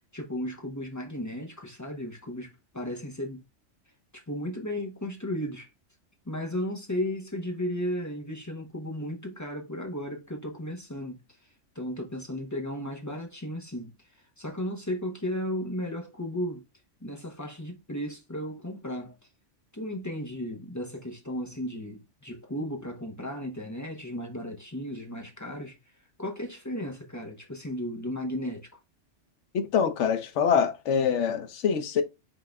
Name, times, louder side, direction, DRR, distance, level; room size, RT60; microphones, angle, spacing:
voice 1, 0.1-3.4 4.1-5.7 6.3-11.2 11.7-14.1 14.4-16.6 17.0-19.1 19.7-25.8 26.2-28.7, left 1 dB, 15° left, 0.7 m, -35 dB
voice 2, 29.5-32.0, left 7 dB, 85° left, 1.0 m, -25 dB
5.5 x 3.7 x 2.3 m
omnidirectional pair, 1.2 m